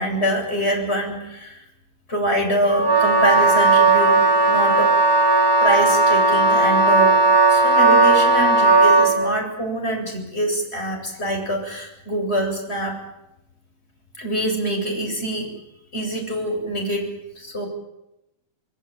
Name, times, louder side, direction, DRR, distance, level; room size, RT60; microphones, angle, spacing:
voice 1, 0.0-1.6 2.1-4.9 5.6-7.2 7.5-13.0 14.2-15.5 15.9-17.1 17.4-17.6, equal, 15° left, 2 dB, 7.9 m, -25 dB
Wind instrument woodwind instrument, 2.7-9.2, right 3 dB, 65° right, 5.8 m, -16 dB
28.5 x 20.5 x 9.2 m, 0.88 s
omnidirectional pair, 3.9 m